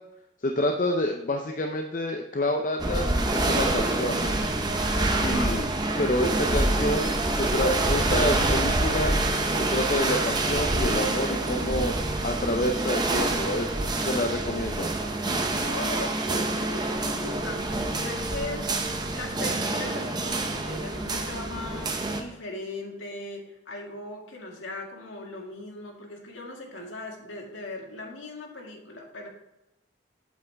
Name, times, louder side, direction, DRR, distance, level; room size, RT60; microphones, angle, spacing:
voice 1, 0.4-4.2 5.2-5.6 6.0-9.2 9.6-11.9 12.2-13.8 14.1-14.9, left 1 dB, 40° left, 3 dB, 0.6 m, -28 dB
sound 1, 2.8-22.2, right 2 dB, 20° right, 0.7 m, -26 dB
voice 2, 4.9-5.6 15.7-18.7 19.1-29.3, left 2 dB, 85° left, 0 dB, 1.9 m, -39 dB
8.2 x 7.2 x 3.4 m, 0.92 s
head